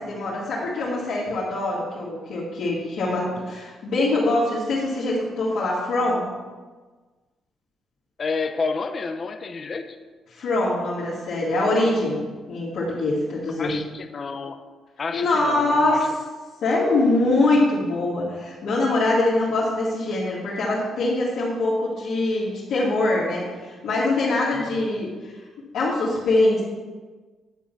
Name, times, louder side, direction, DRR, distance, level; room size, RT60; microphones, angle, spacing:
voice 1, 0.0-6.3 10.3-13.8 15.1-16.1 16.6-25.3 25.7-26.6, left 2 dB, 75° left, -9 dB, 2.2 m, -23 dB
voice 2, 8.2-9.9 13.6-14.6 15.0-16.1 24.5-24.7, left 4 dB, 40° left, 8 dB, 0.7 m, -30 dB
9.9 x 3.9 x 7.0 m, 1.3 s
cardioid pair, 90°, 0 cm